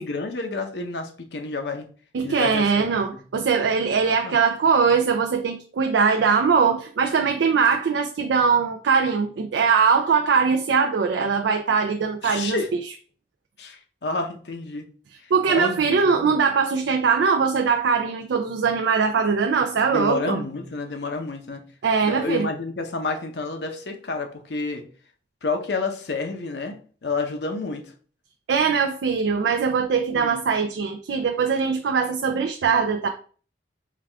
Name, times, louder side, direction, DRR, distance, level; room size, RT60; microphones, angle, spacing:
voice 1, 0.0-1.9 2.2-3.0 4.0-4.4 12.2-12.7 13.6-14.9 15.5-16.4 19.9-21.6 22.0-24.8 25.4-27.9 30.1-30.4, left 3 dB, 70° left, 0.7 m, -30 dB
voice 2, 2.1-12.8 15.3-20.4 21.8-22.5 28.5-33.1, right 5 dB, 90° right, 0.4 m, -21 dB
4.6 x 2.4 x 3.4 m
head